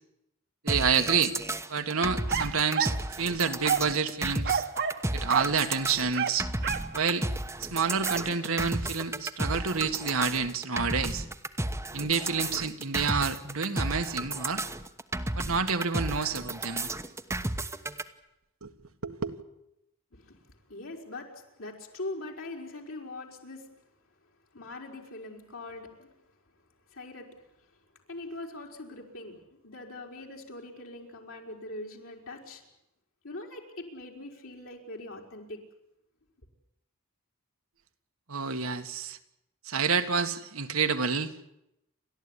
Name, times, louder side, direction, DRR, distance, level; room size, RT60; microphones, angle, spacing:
voice 1, 0.6-1.4 1.7-4.6 5.1-6.5 6.9-7.3 7.6-11.3 11.9-14.6 15.4-16.9 18.6-18.7 19.0-19.4 38.3-39.2 39.7-41.3, right 5 dB, 75° right, 1.7 m, -28 dB
sound 1, 0.7-18.0, right 2 dB, 15° right, 1.1 m, -33 dB
sound 2, 2.3-3.0 3.6-4.0 4.4-5.0 5.3-5.5 6.1-6.9 8.0-8.3, right 7 dB, 55° right, 1.5 m, -29 dB
voice 2, 20.1-23.7 24.5-26.1 26.9-27.3 28.1-32.6 33.2-35.6, left 2 dB, 65° left, 4.9 m, -42 dB
30.0 x 13.5 x 9.9 m
head